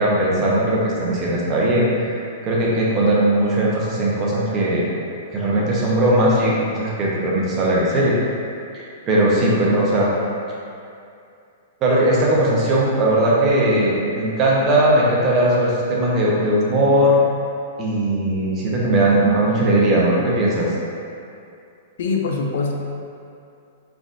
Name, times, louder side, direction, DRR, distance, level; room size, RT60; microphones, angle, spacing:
voice 1, 0.0-2.2 2.4-4.9 5.3-8.1 8.7-10.1 11.8-17.2 17.8-20.7, right 1 dB, 30° right, -5 dB, 0.7 m, -18 dB
voice 2, 22.0-22.7, left 4 dB, 70° left, 0 dB, 0.5 m, -23 dB
3.9 x 3.4 x 2.5 m, 2.5 s
hypercardioid pair, 145°, 0 cm